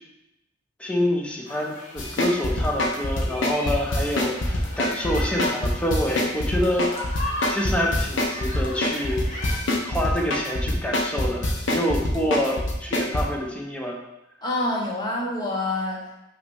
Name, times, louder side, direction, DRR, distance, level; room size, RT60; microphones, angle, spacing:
voice 1, 0.8-6.9 7.5-9.2 9.8-14.0, equal, 5° left, -1 dB, 0.9 m, -27 dB
sound 1, 1.5-9.6, left 2 dB, 40° left, 1.5 m, -37 dB
sound 2, 2.0-13.2, left 1 dB, 75° left, 1.0 m, -24 dB
voice 2, 14.4-16.2, left 2 dB, 20° left, -3 dB, 1.3 m, -27 dB
5.8 x 3.2 x 5.4 m, 0.92 s
head